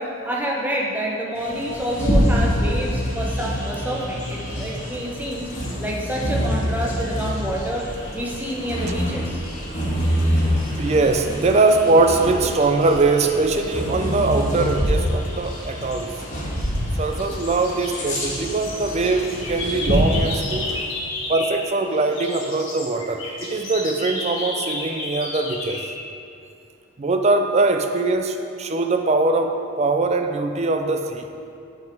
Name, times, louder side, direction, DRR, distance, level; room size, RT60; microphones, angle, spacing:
voice 1, 0.0-5.5 5.8-7.8 8.1-9.4, equal, 10° right, -3 dB, 0.8 m, -28 dB
Bird vocalization bird call bird song, 1.3-20.8, equal, 35° left, 1.6 m, -26 dB
sound 1, 4.5-20.8, left 1 dB, 85° left, 1.0 m, -41 dB
voice 2, 10.8-16.2 17.0-20.8 21.3-25.8 27.0-31.2, right 3 dB, 30° right, 6 dB, 0.4 m, -21 dB
sound 2, 16.0-16.8 17.2-21.7 21.9-25.9, left 2 dB, 70° left, 1.5 m, -32 dB
7.4 x 5.8 x 4.5 m, 2.6 s
head